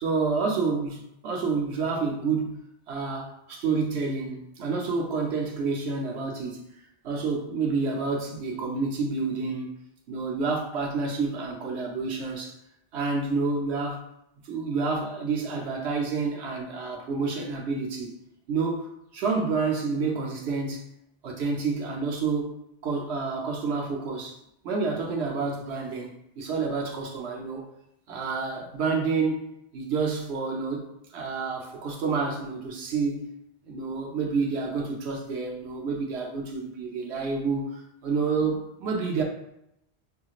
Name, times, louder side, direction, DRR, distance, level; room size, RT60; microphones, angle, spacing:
voice 1, 0.0-2.6 2.9-6.6 7.0-9.8 10.1-12.5 12.9-14.0 14.4-18.2 18.5-20.8 21.2-22.6 22.8-24.4 24.6-27.6 28.1-29.4 29.7-30.9 31.1-33.3 33.6-39.2, right 4 dB, 85° right, 0 dB, 1.0 m, -29 dB
5.3 x 2.9 x 2.4 m, 0.81 s
omnidirectional pair, 1.1 m